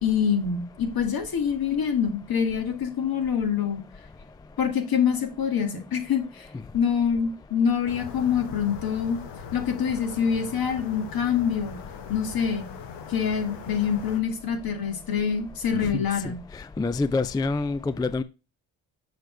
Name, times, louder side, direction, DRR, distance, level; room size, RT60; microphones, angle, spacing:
voice 1, 0.0-3.8 4.6-6.5 6.7-9.2 9.5-11.8 12.1-12.7 13.1-16.4, left 7 dB, 55° left, 2.1 m, -25 dB
sound 1, 7.8-14.2, left 7 dB, 85° left, 1.3 m, -40 dB
voice 2, 15.8-18.2, left 3 dB, 10° left, 0.3 m, -27 dB
6.5 x 6.2 x 3.2 m
cardioid pair, 75°, 41 cm